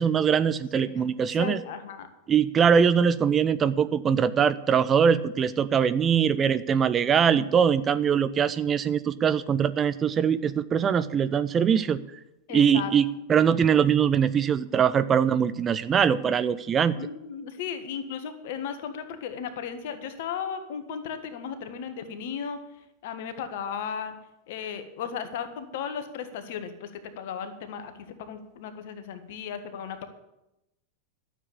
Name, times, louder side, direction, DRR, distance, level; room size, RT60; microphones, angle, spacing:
voice 1, 0.0-1.6 2.3-12.0 12.5-16.9, right 7 dB, 25° right, 14 dB, 0.5 m, -22 dB
voice 2, 0.7-2.1 12.5-12.9 17.0-22.6 23.0-24.1 24.5-27.9 28.2-30.1, left 7 dB, 50° left, 9 dB, 1.5 m, -35 dB
12.5 x 7.4 x 8.6 m, 0.90 s
figure-of-eight pair, 90°, 0 cm